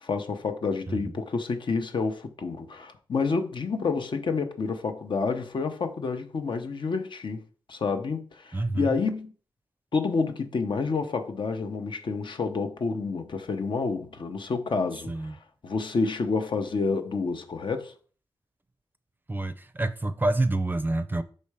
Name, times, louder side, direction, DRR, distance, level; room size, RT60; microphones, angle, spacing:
voice 1, 0.0-7.4 7.7-9.3 9.9-15.4 15.6-17.9, left 4 dB, 65° left, 0.8 m, -29 dB
voice 2, 8.5-9.0 15.1-15.4 19.3-21.2, right 2 dB, 20° right, 0.5 m, -28 dB
5.5 x 4.3 x 4.8 m
wide cardioid pair, 90°, 9 cm